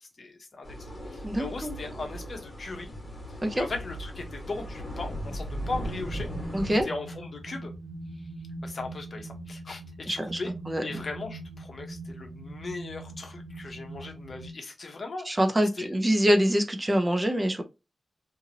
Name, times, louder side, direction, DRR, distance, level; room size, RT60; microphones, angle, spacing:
voice 1, 0.2-2.9 3.5-6.3 6.8-7.7 8.6-10.5 10.8-15.4 15.7-15.9, left 3 dB, 55° left, 0.8 m, -38 dB
sound 1, 0.6-6.8, equal, 35° left, 1.5 m, -38 dB
voice 2, 1.2-1.7 3.4-3.7 6.5-6.9 10.1-10.4 10.7-10.8 15.3-17.6, equal, 20° right, 0.6 m, -25 dB
sound 2, 5.7-14.5, right 2 dB, 80° right, 0.5 m, -41 dB
2.8 x 2.6 x 2.8 m
wide cardioid pair, 120°, 0 cm